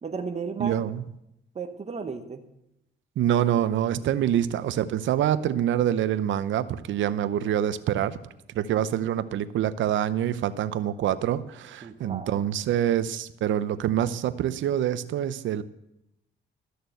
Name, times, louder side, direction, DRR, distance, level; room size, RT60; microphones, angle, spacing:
voice 1, 0.0-0.8 1.5-2.5 11.8-12.4, right 5 dB, 35° right, 7 dB, 1.1 m, -34 dB
voice 2, 0.6-1.0 3.2-8.2 8.5-15.6, right 11 dB, 70° right, 14 dB, 0.7 m, -26 dB
13.0 x 6.6 x 7.9 m, 0.84 s
cardioid pair, 90°, 20 cm